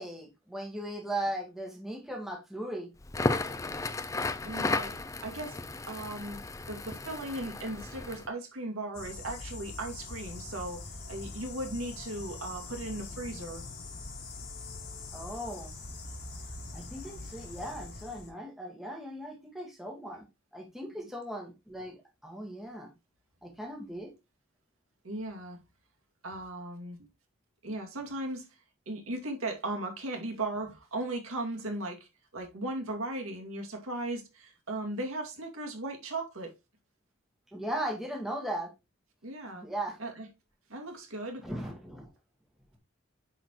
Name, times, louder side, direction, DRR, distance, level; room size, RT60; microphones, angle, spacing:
voice 1, 0.0-2.9 15.1-15.7 16.7-20.2 20.5-22.9 23.4-24.1 37.5-38.7 39.5-40.0 41.4-42.1, right 1 dB, ahead, 1.5 m, -38 dB
Crackle, 3.0-8.3, left 3 dB, 15° left, 0.3 m, -34 dB
voice 2, 4.4-6.4 6.7-10.8 11.1-13.6 25.0-25.6 26.2-27.1 27.6-28.5 28.9-36.5 39.2-39.6 40.0-40.3 40.7-41.5, right 2 dB, 85° right, 2.3 m, -37 dB
sound 1, 8.9-18.3, left 3 dB, 50° left, 1.8 m, -43 dB
9.9 x 4.2 x 3.0 m
head